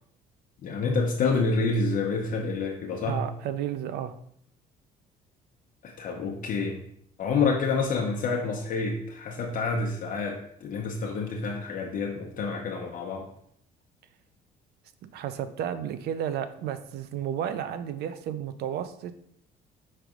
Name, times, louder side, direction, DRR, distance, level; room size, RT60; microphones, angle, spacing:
voice 1, 0.6-3.3 5.8-6.8 7.2-13.3, left 4 dB, 50° left, 0 dB, 0.9 m, -28 dB
voice 2, 3.1-4.1 15.1-19.1, right 9 dB, 70° right, 11 dB, 0.6 m, -32 dB
5.7 x 3.3 x 5.1 m, 0.68 s
cardioid pair, 110°, 17 cm